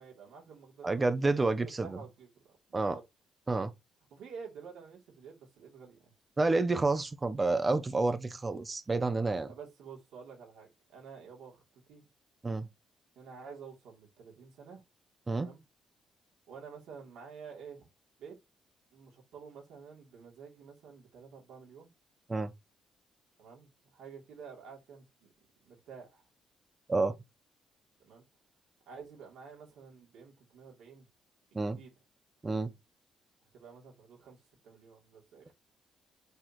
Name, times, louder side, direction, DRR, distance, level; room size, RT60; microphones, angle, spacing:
voice 1, 0.0-3.0 4.1-6.1 9.4-12.0 13.1-14.8 15.4-15.6 16.5-17.9 18.2-18.4 18.9-21.9 23.4-25.3 25.6-26.2 28.0-28.3 28.9-31.1 31.5-31.9 33.5-34.4 34.6-35.5, right 6 dB, 80° right, 3.1 m, -50 dB
voice 2, 0.8-2.0 2.7-3.0 3.5-3.7 6.4-9.5 12.4-12.7 15.3-15.5 22.3-22.5 26.9-27.1 31.5-31.8 32.4-32.7, right 3 dB, 25° right, 0.9 m, -29 dB
7.9 x 4.3 x 3.1 m
cardioid pair, 90°, 0 cm